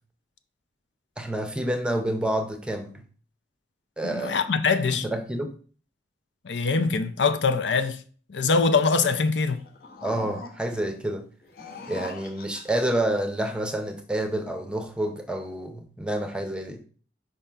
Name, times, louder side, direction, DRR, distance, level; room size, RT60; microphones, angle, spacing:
voice 1, 1.2-3.0 4.0-4.4 5.0-5.6 10.0-11.3 11.9-16.8, right 1 dB, 5° right, 0.6 m, -28 dB
voice 2, 4.0-5.1 6.4-8.0 8.3-9.6, left 4 dB, 75° left, 0.6 m, -23 dB
sound 1, 9.5-10.9 11.4-13.0, left 4 dB, 50° left, 1.0 m, -42 dB
5.4 x 3.8 x 5.6 m
head